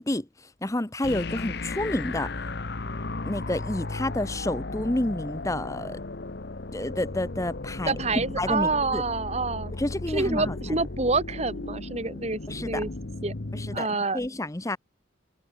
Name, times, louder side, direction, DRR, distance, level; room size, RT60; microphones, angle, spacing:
voice 1, 0.0-2.3 3.2-6.0 6.7-9.0 9.7-10.8 12.5-12.8 13.5-14.8, left 1 dB, 15° left, 0.9 m, -30 dB
sound 1, 1.0-13.8, left 2 dB, 60° left, 1.1 m, -35 dB
voice 2, 7.9-9.7 10.1-12.9 13.2-13.3 13.7-14.2, right 3 dB, 35° right, 1.7 m, -27 dB
head